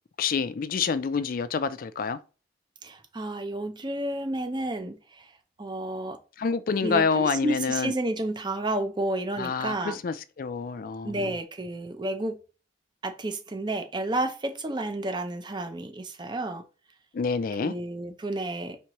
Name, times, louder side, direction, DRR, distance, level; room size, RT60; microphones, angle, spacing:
voice 1, 0.2-2.2 6.4-7.9 9.4-11.3 17.1-17.7, left 5 dB, 50° left, 0.4 m, -27 dB
voice 2, 2.8-5.3 5.6-6.2 6.8-10.0 11.0-12.4 13.0-16.6 17.6-18.8, right 1 dB, 25° right, 0.6 m, -31 dB
4.6 x 3.5 x 3.0 m
head